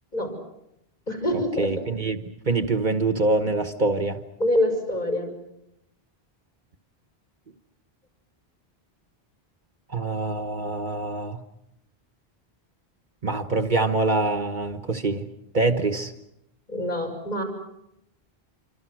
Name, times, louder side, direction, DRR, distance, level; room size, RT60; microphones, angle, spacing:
voice 1, 1.1-1.7 4.4-5.3 16.7-17.4, left 1 dB, 45° left, 2 dB, 6.2 m, -25 dB
voice 2, 1.6-4.2 9.9-11.4 13.2-15.3 15.5-16.1, right 3 dB, 50° right, 8 dB, 1.3 m, -25 dB
27.5 x 25.0 x 6.3 m, 0.81 s
omnidirectional pair, 1.1 m